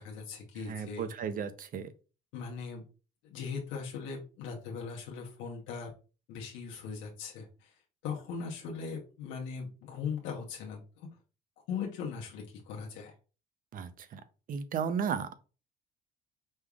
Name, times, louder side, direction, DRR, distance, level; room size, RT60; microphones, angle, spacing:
voice 1, 0.0-1.1 2.3-2.8 3.2-5.9 6.3-11.1 11.7-13.1, left 6 dB, 85° left, -1 dB, 1.1 m, -39 dB
voice 2, 0.6-1.9 13.7-14.2 14.5-15.3, right 7 dB, 45° right, 12 dB, 0.6 m, -34 dB
5.3 x 3.5 x 2.4 m, 0.34 s
cardioid pair, 115°, 19 cm